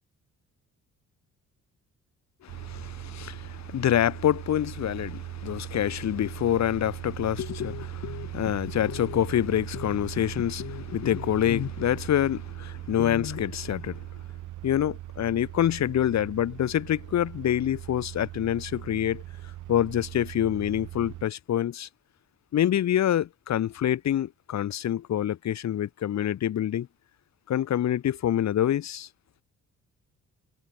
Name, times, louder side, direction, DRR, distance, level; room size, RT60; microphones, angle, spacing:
voice 1, 2.4-14.2 14.6-19.2 19.7-21.9 22.5-26.9 27.5-29.1, left 11 dB, 65° left, 1.9 m, -26 dB
sound 1, 2.5-21.2, right 15 dB, 85° right, 2.2 m, -40 dB
cardioid pair, 90°, 30 cm